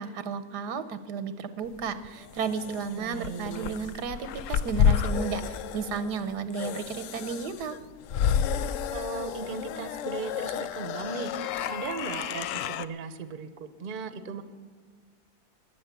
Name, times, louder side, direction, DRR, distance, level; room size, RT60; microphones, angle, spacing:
voice 1, 0.0-7.8, right 5 dB, 80° right, 12 dB, 1.5 m, -33 dB
sound 1, 1.8-12.9, left 8 dB, 65° left, 0.8 m, -30 dB
voice 2, 3.0-3.7 8.9-11.3 11.7-14.4, right 5 dB, 40° right, 12 dB, 0.8 m, -37 dB
15.0 x 10.5 x 8.2 m, 1.5 s
omnidirectional pair, 1.7 m